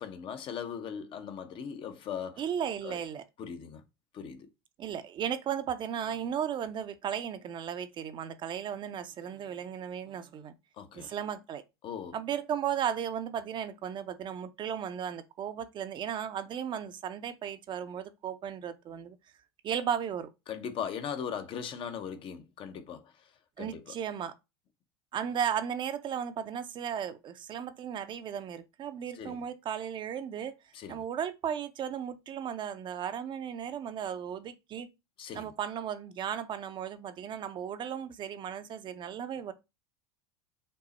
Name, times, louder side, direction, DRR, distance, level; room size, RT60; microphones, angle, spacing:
voice 1, 0.0-2.4 2.8-3.0 3.4-3.8 4.1-4.5 10.8-11.1 11.8-12.2 20.5-23.0 23.6-24.0 29.1-29.5 30.7-31.0 35.2-35.5, left 7 dB, 40° left, 0.7 m, -39 dB
voice 2, 2.4-3.2 4.8-10.5 10.9-11.6 12.1-19.2 19.6-20.3 23.6-24.3 25.1-30.6 30.9-34.9 35.3-39.5, right 8 dB, 35° right, 0.5 m, -35 dB
5.3 x 2.0 x 4.0 m
hypercardioid pair, 90°, 13 cm